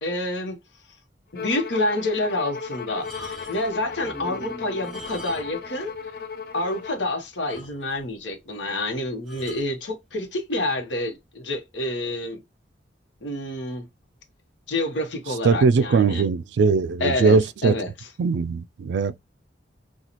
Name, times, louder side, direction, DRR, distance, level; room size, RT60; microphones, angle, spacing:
voice 1, 0.0-0.6 1.3-5.9 6.5-12.4 13.2-13.9 14.7-16.2 17.0-17.9, left 1 dB, 90° left, 1.0 m, -28 dB
Bowed string instrument, 1.4-7.1, left 5 dB, 55° left, 0.5 m, -36 dB
sound 1, 2.9-3.8 4.7-5.7 6.0-6.1 6.6-6.7 7.0-7.1 7.5-8.1 9.3-9.7 10.6-10.8, left 1 dB, 5° left, 2.2 m, -43 dB
sound 2, 3.5-7.2 7.6-7.7, equal, 10° right, 0.6 m, -45 dB
voice 2, 15.4-17.8 18.2-19.2, right 4 dB, 70° right, 0.3 m, -20 dB
4.0 x 2.3 x 2.9 m
head